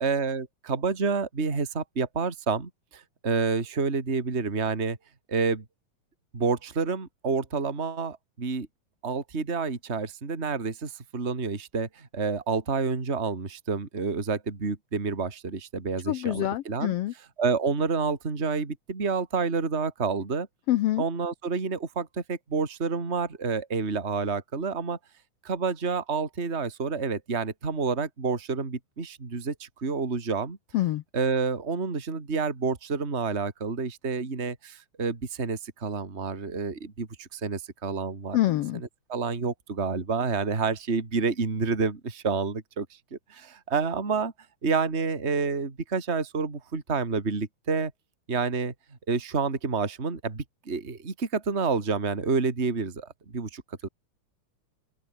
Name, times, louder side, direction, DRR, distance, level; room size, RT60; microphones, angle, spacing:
voice 1, 0.0-5.0 5.3-5.6 6.3-8.7 9.0-20.5 21.0-25.0 25.4-30.6 31.1-38.4 38.7-42.9 43.1-44.3 44.6-47.9 48.3-48.7 49.1-53.9, right 4 dB, 20° right, 2.8 m, -29 dB
voice 2, 16.1-17.1 20.7-21.0 30.7-31.0 38.3-38.8, left 14 dB, 85° left, 1.3 m, -26 dB
open air
omnidirectional pair, 3.7 m